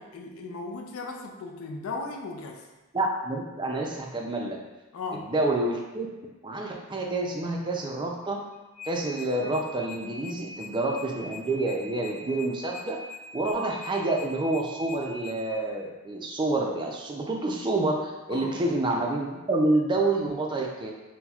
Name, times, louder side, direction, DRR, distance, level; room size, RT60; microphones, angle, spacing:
voice 1, 0.0-2.7 4.9-5.3 18.3-18.6, left 3 dB, 70° left, 2 dB, 0.4 m, -37 dB
voice 2, 2.9-4.6 5.3-6.1 6.4-8.5 8.8-13.0 13.3-20.9, right 2 dB, 20° right, 0 dB, 0.3 m, -28 dB
sound 1, 8.5-15.4, left 5 dB, 35° left, 0.8 m, -42 dB
5.5 x 2.1 x 2.3 m, 1.1 s
head